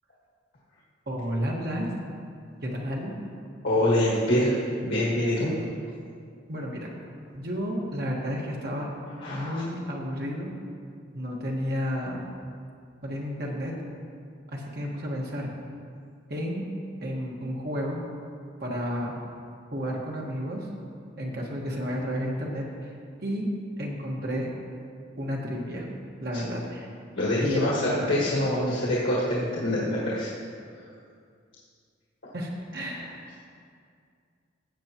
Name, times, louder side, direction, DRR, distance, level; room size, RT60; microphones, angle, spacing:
voice 1, 1.1-1.9 2.6-3.2 6.5-6.9 7.3-8.9 9.3-10.5 11.1-12.2 13.0-13.7 14.5-15.5 16.3-16.6 17.0-18.0 18.6-19.1 19.7-20.7 21.2-22.9 23.2-23.5 23.8-24.5 25.2-25.9 26.2-26.9 27.4-28.2 32.3-33.4, equal, 55° right, -2 dB, 1.6 m, -31 dB
voice 2, 3.6-4.5 4.8-5.5 9.2-9.6 26.3-26.4 27.1-30.3, left 1 dB, 75° left, -7 dB, 1.6 m, -25 dB
15.0 x 8.0 x 3.0 m, 2.3 s
head